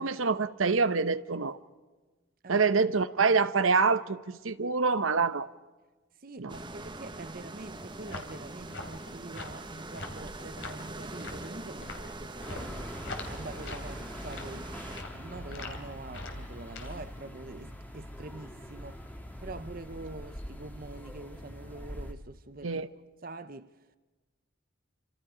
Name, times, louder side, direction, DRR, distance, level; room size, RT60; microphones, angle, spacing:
voice 1, 0.0-1.6 2.5-5.5 6.4-6.5 22.6-22.9, right 4 dB, 85° right, 0.9 m, -26 dB
voice 2, 6.2-12.9 13.3-22.8 23.2-23.8, right 2 dB, 45° right, 0.8 m, -45 dB
sound 1, 6.5-15.0, right 2 dB, 25° right, 1.3 m, -43 dB
sound 2, 7.6-17.2, left 3 dB, 65° left, 3.3 m, -45 dB
sound 3, 12.4-22.1, equal, 10° left, 1.9 m, -43 dB
28.5 x 26.0 x 5.0 m
head